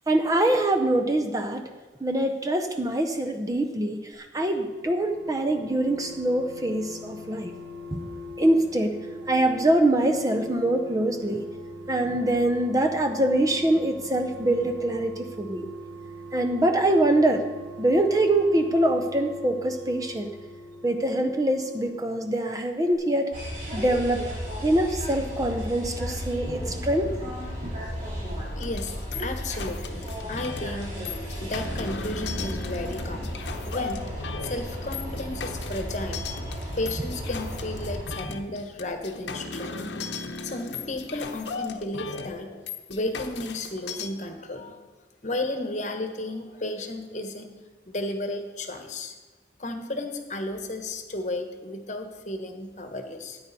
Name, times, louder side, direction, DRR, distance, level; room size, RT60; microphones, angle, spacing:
voice 1, 0.1-1.6 2.0-7.5 7.9-8.0 8.4-9.0 9.3-11.4 11.9-15.6 16.3-17.5 17.8-20.4 20.8-23.3 23.7-24.3 24.6-27.3 27.6-27.7, right 1 dB, 20° right, 5 dB, 0.6 m, -24 dB
sound 1, 4.3-22.6 22.9-23.0, equal, 85° right, 1.6 m, -41 dB
sound 2, 23.3-38.0, equal, 45° right, 3.0 m, -34 dB
voice 2, 28.4-31.0 31.4-33.3 33.6-34.0 34.4-36.4 36.8-39.7 40.4-42.5 42.9-44.8 45.2-47.5 47.9-49.1 49.6-53.4, left 2 dB, 40° left, 6 dB, 1.1 m, -33 dB
sound 3, 28.6-44.1, left 4 dB, 75° left, 0.9 m, -37 dB
13.5 x 9.4 x 4.1 m, 1.3 s
head